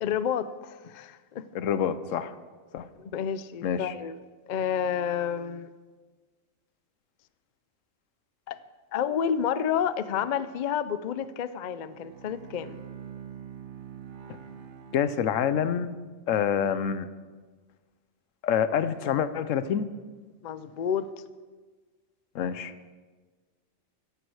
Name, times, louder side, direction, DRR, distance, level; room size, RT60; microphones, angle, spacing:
voice 1, 0.0-1.5 3.0-4.2 4.5-5.7 8.5-8.6 8.9-12.8 20.4-21.1, left 8 dB, 55° left, 14 dB, 0.5 m, -30 dB
voice 2, 1.5-2.3 2.7-2.9 3.6-3.9 14.9-16.0 16.3-17.1 18.4-19.9 22.3-22.7, left 8 dB, 85° left, 13 dB, 1.0 m, -27 dB
Bowed string instrument, 11.8-15.9, right 8 dB, 65° right, 1.1 m, -45 dB
14.5 x 10.5 x 4.7 m, 1.4 s
omnidirectional pair, 1.3 m